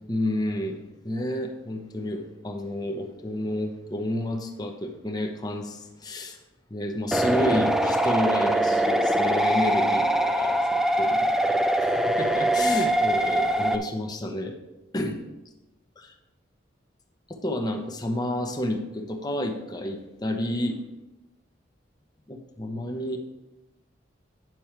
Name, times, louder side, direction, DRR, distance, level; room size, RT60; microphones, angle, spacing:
voice 1, 0.1-0.8 1.0-6.4 6.7-14.5 14.9-15.2 16.0-16.1 17.3-20.8 22.3-23.2, left 1 dB, 20° left, 3 dB, 0.9 m, -30 dB
sound 1, 7.1-13.8, right 1 dB, ahead, 0.4 m, -23 dB
9.0 x 6.3 x 4.4 m, 0.98 s
head